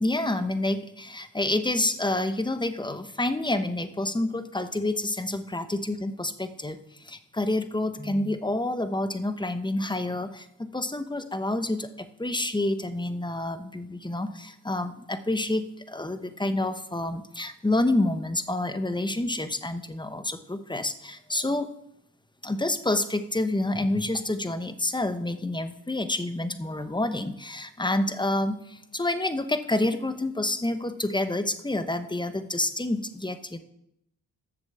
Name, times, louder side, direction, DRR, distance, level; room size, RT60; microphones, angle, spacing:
voice 1, 0.0-6.7 7.4-21.7 22.4-33.6, left 2 dB, 10° left, 10 dB, 1.0 m, -28 dB
7.8 x 6.9 x 7.1 m, 0.77 s
supercardioid pair, 50°, 37 cm